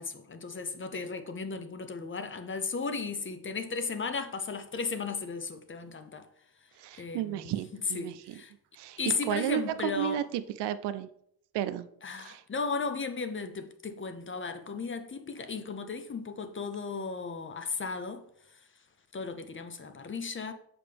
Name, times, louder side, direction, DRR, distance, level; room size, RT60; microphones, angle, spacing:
voice 1, 0.0-6.3 7.0-8.5 9.0-10.2 12.0-18.2 18.5-18.6 19.1-20.5, left 4 dB, 30° left, 0.7 m, -35 dB
voice 2, 6.8-8.3 8.7-9.0 9.3-11.1 11.5-11.9 12.2-12.4, right 12 dB, 80° right, 0.6 m, -33 dB
6.6 x 5.0 x 3.4 m
cardioid pair, 75°, 41 cm